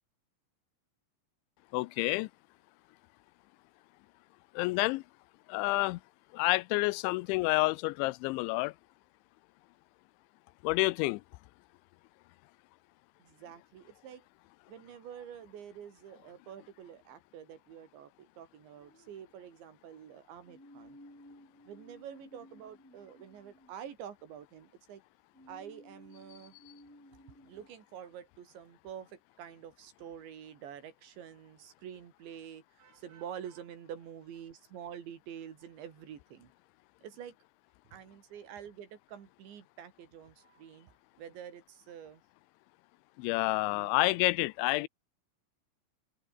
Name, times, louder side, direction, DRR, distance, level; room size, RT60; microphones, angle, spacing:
voice 1, 1.7-2.3 4.5-5.0 5.5-6.0 6.3-8.7 10.6-11.2 43.2-44.9, left 22 dB, 85° left, 3.0 m, -29 dB
voice 2, 13.2-14.3 14.7-21.0 21.7-25.0 25.5-26.6 27.5-36.5 37.0-37.4 37.9-40.9 41.2-42.2 43.6-44.3, right 9 dB, 75° right, 5.3 m, -47 dB
sound 1, 18.8-19.8 20.4-24.4 25.3-27.7, left 1 dB, 5° left, 1.4 m, -57 dB
omnidirectional pair, 5.3 m